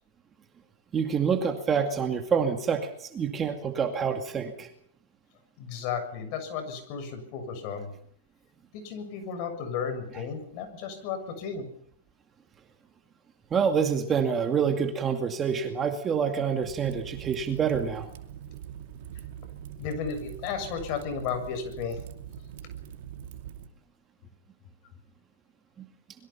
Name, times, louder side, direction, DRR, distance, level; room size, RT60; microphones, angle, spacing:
voice 1, 0.9-4.7 13.5-18.1 25.8-25.9, right 6 dB, 20° right, 5 dB, 2.2 m, -27 dB
voice 2, 5.6-7.9 8.7-11.7 19.8-22.0, left 6 dB, 40° left, 8 dB, 7.2 m, -34 dB
Fire, 16.6-23.7, right 10 dB, 55° right, 2.6 m, -43 dB
26.5 x 22.5 x 5.9 m, 0.66 s
hypercardioid pair, 145°, 0 cm